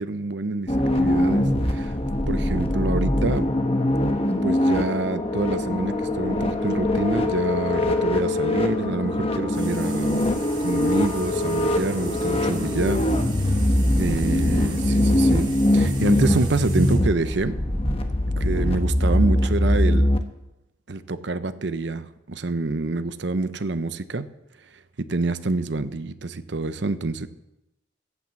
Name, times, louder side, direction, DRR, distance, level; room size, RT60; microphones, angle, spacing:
voice 1, 0.0-1.9 2.3-3.5 4.4-10.2 10.6-13.1 14.0-15.5 15.7-17.6 18.4-20.1 20.9-24.3 25.0-27.3, right 3 dB, 60° right, 12 dB, 0.7 m, -27 dB
sound 1, 0.7-20.2, left 1 dB, 30° left, 1.0 m, -22 dB
sound 2, 9.5-17.0, right 5 dB, 25° right, 3.1 m, -41 dB
16.0 x 5.9 x 7.6 m, 0.90 s
head